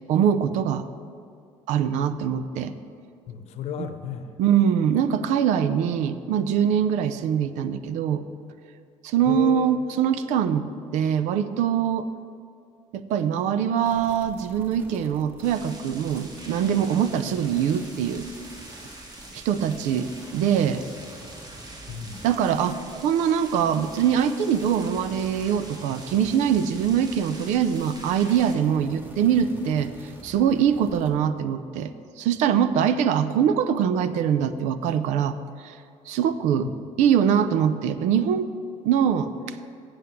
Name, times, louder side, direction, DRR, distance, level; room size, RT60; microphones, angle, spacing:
voice 1, 0.1-0.8 1.7-2.7 3.8-3.9 4.4-8.2 9.0-10.7 10.9-12.1 12.9-18.3 19.3-20.8 22.2-29.9 30.2-35.3 35.6-35.7 36.1-36.7 37.0-38.5 38.8-39.3, right 8 dB, 80° right, 12 dB, 0.6 m, -23 dB
voice 2, 3.3-4.3 9.2-9.9 21.9-22.3 36.6-36.8, left 8 dB, 60° left, 9 dB, 0.9 m, -34 dB
sound 1, 13.8-31.1, right 1 dB, 15° right, 1.5 m, -47 dB
sound 2, 15.4-28.6, right 2 dB, 35° right, 1.9 m, -45 dB
8.0 x 7.7 x 8.3 m, 2.3 s
cardioid pair, 125°, 12 cm